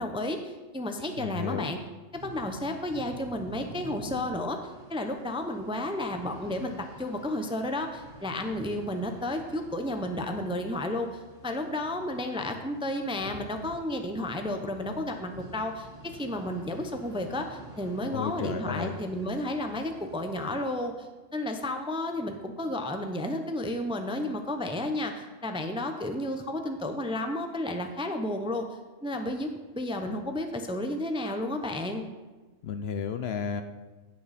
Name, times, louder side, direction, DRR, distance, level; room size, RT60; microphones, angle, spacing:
voice 1, 0.0-1.8 2.2-4.6 4.9-15.9 16.1-21.1 21.3-28.7 29.0-32.0, left 1 dB, 5° right, 5 dB, 0.5 m, -32 dB
voice 2, 1.2-1.7 18.1-19.0 32.6-33.6, left 6 dB, 65° left, 9 dB, 0.7 m, -32 dB
sound 1, 2.1-20.8, right 1 dB, 75° right, 3.0 m, -48 dB
16.5 x 6.1 x 4.2 m, 1.2 s
omnidirectional pair, 1.3 m